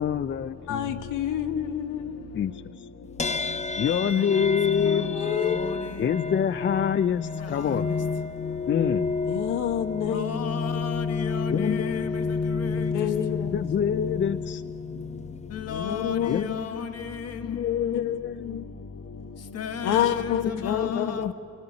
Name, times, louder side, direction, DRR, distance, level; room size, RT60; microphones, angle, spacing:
voice 1, 0.0-1.1 2.3-2.9 3.8-5.2 6.0-7.9 8.7-9.1 11.5-12.0 13.5-14.6 16.3-17.1 17.4-18.6 20.5-21.3, left 8 dB, 40° left, 0.5 m, -27 dB
voice 2, 0.7-2.2 4.8-5.6 9.3-10.6 12.9-13.5 15.7-16.6 17.9-18.1 18.4-18.7 19.8-21.3, left 10 dB, 85° left, 1.2 m, -28 dB
sound 1, 3.2-16.7, left 4 dB, 25° left, 0.9 m, -31 dB
voice 3, 5.4-5.8 7.5-7.8 10.1-12.2 12.6-12.9 15.5-16.8 17.1-17.3 19.5-21.3, left 6 dB, 55° left, 1.5 m, -33 dB
25.5 x 18.0 x 9.8 m
cardioid pair, 90°, 30 cm